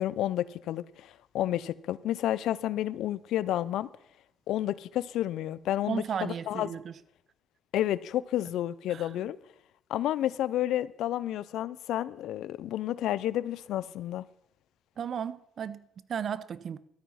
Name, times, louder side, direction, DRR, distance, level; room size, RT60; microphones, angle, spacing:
voice 1, 0.0-3.9 4.5-6.7 7.7-9.4 9.9-14.2, left 13 dB, 85° left, 0.5 m, -30 dB
voice 2, 5.9-7.0 8.9-9.3 15.0-16.8, right 8 dB, 55° right, 0.7 m, -35 dB
13.0 x 8.8 x 5.6 m
cardioid pair, 90°, 0 cm